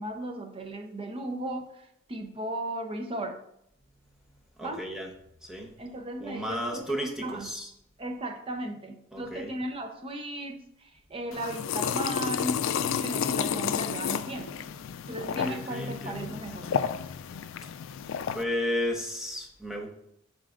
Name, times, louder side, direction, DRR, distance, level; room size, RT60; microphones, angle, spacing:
voice 1, 0.0-3.4 4.6-4.8 5.8-7.6 8.0-14.5 15.1-16.7, right 1 dB, 30° right, 5 dB, 0.7 m, -36 dB
voice 2, 4.6-5.1 5.4-5.7 6.2-7.7 9.1-9.5 15.1-16.3 17.6-17.7 18.3-19.9, equal, 5° right, 1 dB, 0.9 m, -33 dB
sound 1, 11.3-18.4, left 8 dB, 75° left, 0.3 m, -31 dB
11.0 x 3.9 x 2.5 m, 0.75 s
head